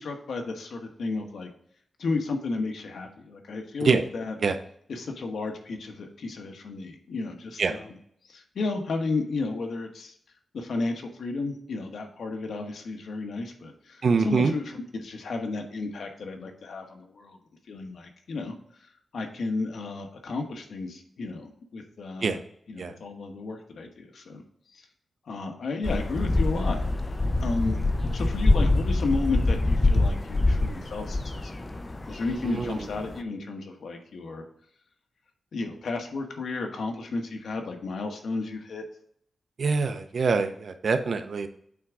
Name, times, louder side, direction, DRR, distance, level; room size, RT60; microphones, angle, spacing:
voice 1, 0.0-1.5 2.0-4.4 4.9-8.0 8.3-10.1 10.5-14.6 15.0-17.4 17.7-18.5 19.1-22.4 22.7-24.4 24.7-24.8 25.3-26.8 27.4-27.8 28.1-31.7 32.1-34.4 35.5-38.8, left 3 dB, 80° left, 4 dB, 1.2 m, -33 dB
voice 2, 14.0-14.5 22.2-22.4 22.8-22.9 32.4-32.7 39.6-41.5, right 4 dB, 60° right, 8 dB, 0.7 m, -24 dB
sound 1, 25.8-33.2, left 2 dB, 25° left, 0.6 m, -25 dB
8.4 x 3.7 x 4.7 m, 0.66 s
wide cardioid pair, 110°, 0 cm